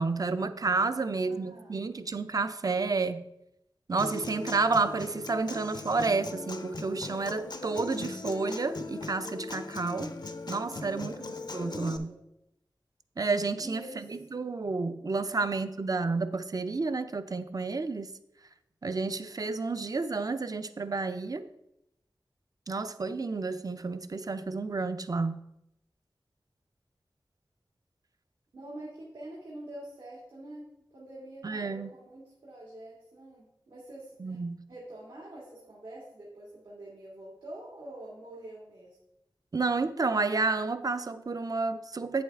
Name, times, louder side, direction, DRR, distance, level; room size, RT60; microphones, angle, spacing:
voice 1, 0.0-3.2 3.9-10.1 10.5-12.1 13.2-18.1 18.8-21.5 22.7-25.4 31.4-31.9 34.2-34.6 39.5-42.2, right 3 dB, 45° right, 0.5 m, -30 dB
voice 2, 0.9-1.8 10.7-11.2 11.5-12.2 13.6-14.1 15.3-15.6 28.5-30.7 30.9-34.4 34.7-39.0, right 1 dB, 90° right, 2.2 m, -46 dB
Human voice / Acoustic guitar, 4.0-12.0, left 3 dB, 55° left, 0.7 m, -39 dB
8.5 x 7.6 x 3.6 m
wide cardioid pair, 70°, 8 cm